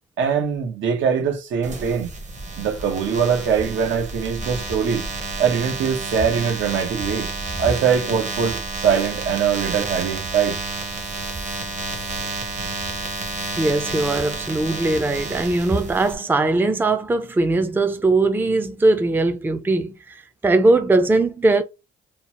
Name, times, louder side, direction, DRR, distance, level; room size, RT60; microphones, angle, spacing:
voice 1, 0.2-2.1 2.6-5.0 5.4-7.3 7.6-10.6, right 7 dB, 75° right, 0.8 m, -22 dB
sound 1, 1.6-16.1, right 3 dB, 35° right, 0.8 m, -30 dB
voice 2, 13.5-21.6, right 2 dB, 10° right, 0.5 m, -20 dB
2.9 x 2.0 x 2.9 m
cardioid pair, 90°, 20 cm